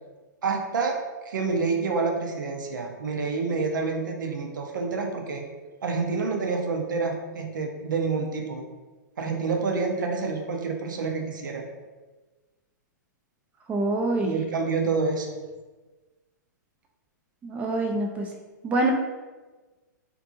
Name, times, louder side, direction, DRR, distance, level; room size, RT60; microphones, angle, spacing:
voice 1, 0.4-1.0 1.3-5.5 5.8-8.6 9.2-11.7 14.2-15.4, right 4 dB, 80° right, 2 dB, 0.5 m, -28 dB
voice 2, 13.7-14.4 17.4-18.3 18.6-18.9, right 2 dB, 15° right, 1 dB, 0.3 m, -25 dB
2.6 x 2.6 x 2.4 m, 1.3 s
hypercardioid pair, 120°, 10 cm